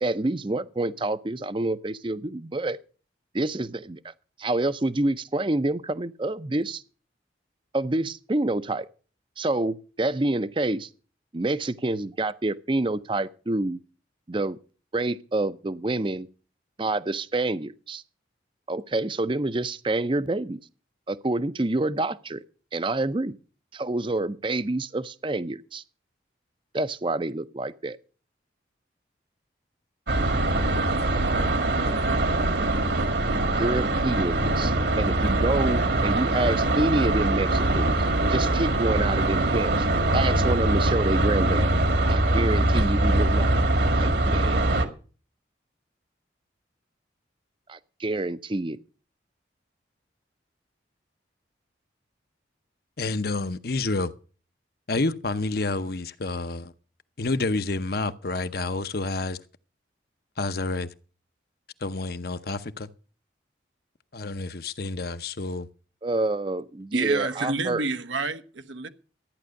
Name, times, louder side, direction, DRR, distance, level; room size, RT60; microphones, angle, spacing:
voice 1, 0.0-2.8 3.3-4.1 4.4-6.8 7.7-8.9 9.4-10.9 11.3-13.8 14.3-14.6 14.9-16.3 16.8-18.0 18.7-20.6 21.1-22.4 22.7-23.4 23.7-25.8 26.7-28.0 33.5-38.0 38.3-39.9 40.1-41.7 42.0-43.7 43.9-44.7 47.7-48.8 66.0-67.9, right 2 dB, 25° right, 0.6 m, -27 dB
sound 1, 30.1-44.9, right 2 dB, 60° right, 1.8 m, -23 dB
voice 2, 53.0-54.1 54.9-56.7 57.2-59.4 60.4-60.9 61.8-62.9 64.1-65.7, left 3 dB, 55° left, 0.8 m, -29 dB
voice 3, 66.9-68.9, right 3 dB, 85° right, 1.2 m, -28 dB
14.0 x 9.7 x 6.4 m
head